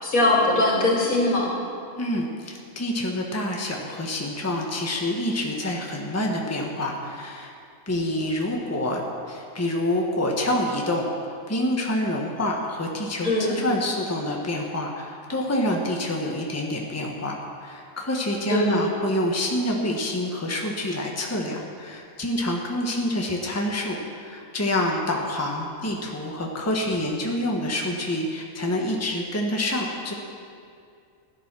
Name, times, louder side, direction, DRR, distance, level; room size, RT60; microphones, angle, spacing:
voice 1, 0.0-1.5 13.2-13.6 18.5-18.7, left 2 dB, 75° left, -3 dB, 3.3 m, -21 dB
voice 2, 2.0-7.5 7.9-30.1, left 1 dB, 10° left, -1 dB, 1.4 m, -27 dB
15.5 x 11.0 x 6.2 m, 2.3 s
omnidirectional pair, 1.5 m